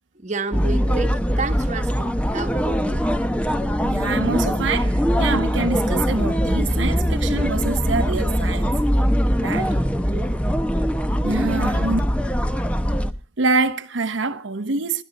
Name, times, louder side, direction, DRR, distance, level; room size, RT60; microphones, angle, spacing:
voice 1, 0.2-3.0 9.5-9.8 10.1-10.3, right 3 dB, 40° right, 1.3 m, -31 dB
sound 1, 0.5-13.1, equal, 5° left, 0.9 m, -22 dB
voice 2, 3.8-8.7 9.4-9.7 11.2-12.0 13.4-15.0, right 3 dB, 85° right, 1.0 m, -25 dB
21.0 x 13.0 x 4.1 m
head